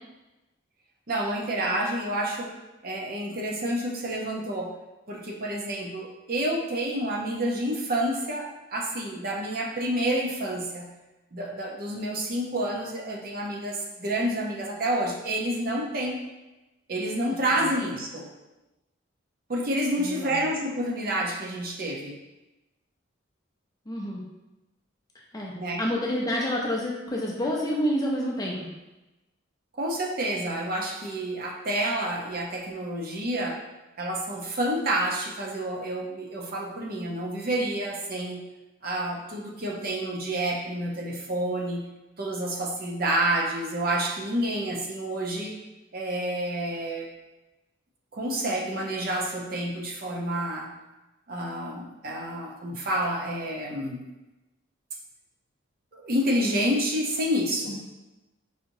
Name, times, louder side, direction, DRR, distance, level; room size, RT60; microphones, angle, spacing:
voice 1, 1.1-2.5 2.8-4.7 5.1-10.9 11.3-16.2 16.9-18.3 19.5-22.1 25.5-25.8 29.8-33.6 34.0-38.4 38.8-41.8 42.2-45.5 45.9-47.1 48.1-50.7 51.3-54.0 55.9-57.8, right 1 dB, 45° right, -1 dB, 0.6 m, -29 dB
voice 2, 20.0-20.4 23.9-24.2 25.3-28.7, equal, 20° left, -2 dB, 0.5 m, -28 dB
4.8 x 2.9 x 2.6 m, 1.0 s
head